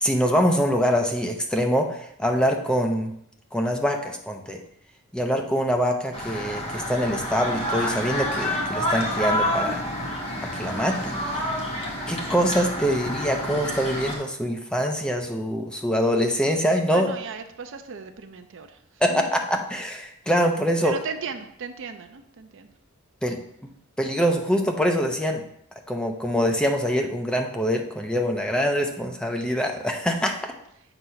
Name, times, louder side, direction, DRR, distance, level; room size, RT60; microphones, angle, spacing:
voice 1, 0.0-3.1 3.5-4.6 5.1-9.8 10.5-11.2 12.1-17.1 19.0-20.9 23.2-23.7 24.0-25.5 25.9-30.3, equal, 5° left, 3 dB, 0.6 m, -24 dB
Soccer Atmo Kids Background Machien, 6.1-14.2, left 1 dB, 30° left, 1.6 m, -28 dB
voice 2, 16.9-18.8 19.1-19.3 20.8-22.7, right 5 dB, 60° right, 8 dB, 0.6 m, -36 dB
7.9 x 3.0 x 5.6 m, 0.71 s
head